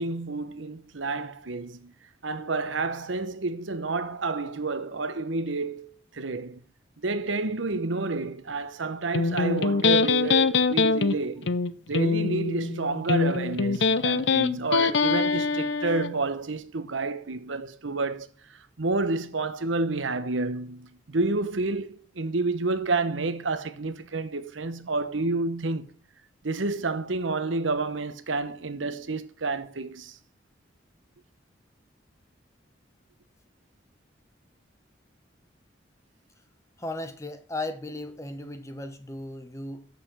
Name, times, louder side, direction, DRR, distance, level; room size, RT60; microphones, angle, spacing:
voice 1, 0.0-1.9 2.2-6.6 7.0-11.5 11.9-18.3 18.8-25.9 26.4-30.1, right 3 dB, 85° right, 1.0 m, -29 dB
Electric guitar, 9.1-16.1, left 4 dB, 70° left, 0.7 m, -24 dB
voice 2, 36.8-39.9, left 2 dB, 15° left, 1.0 m, -36 dB
7.9 x 6.7 x 6.3 m
head